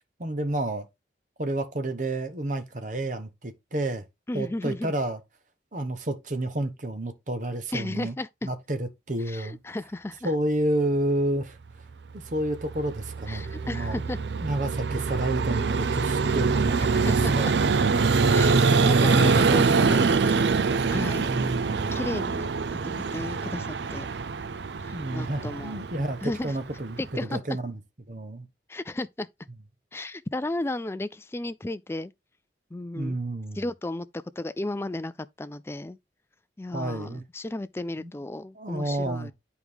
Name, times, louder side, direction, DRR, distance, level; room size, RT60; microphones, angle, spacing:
voice 1, 0.2-0.8 1.4-4.0 4.3-5.2 5.7-8.1 8.4-9.6 10.2-11.6 12.1-14.0 14.4-17.5 21.2-22.0 24.9-27.8 28.1-28.5 32.9-33.6 36.7-37.2 38.0-38.1 38.5-39.3, right 1 dB, 45° right, 1.1 m, -30 dB
voice 2, 4.3-4.9 7.7-8.5 9.3-10.3 13.3-14.2 17.0-17.5 18.3-21.3 21.9-22.5 22.8-24.1 24.8-25.8 26.2-26.6 27.0-27.6 28.7-29.3 29.9-32.1 32.7-33.2 33.5-35.1 35.4-36.0 36.6-39.3, left 2 dB, 15° left, 0.3 m, -34 dB
Vehicle, 12.4-27.1, right 4 dB, 80° right, 0.5 m, -24 dB
9.1 x 4.7 x 3.5 m
head